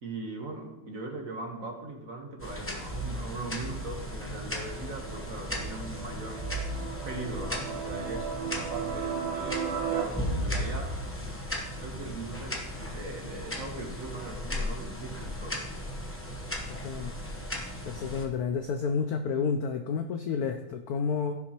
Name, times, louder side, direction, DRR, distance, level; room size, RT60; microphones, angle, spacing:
voice 1, 0.0-6.4 7.0-10.9 11.8-15.6, right 2 dB, 45° right, 2 dB, 1.5 m, -40 dB
sound 1, 2.4-18.3, equal, 20° left, 0.3 m, -36 dB
sound 2, 4.5-10.0, right 7 dB, 80° right, 2.0 m, -36 dB
voice 2, 16.7-17.1 17.8-21.4, left 5 dB, 75° left, 7 dB, 0.8 m, -30 dB
15.5 x 6.2 x 2.9 m, 0.98 s
omnidirectional pair, 2.2 m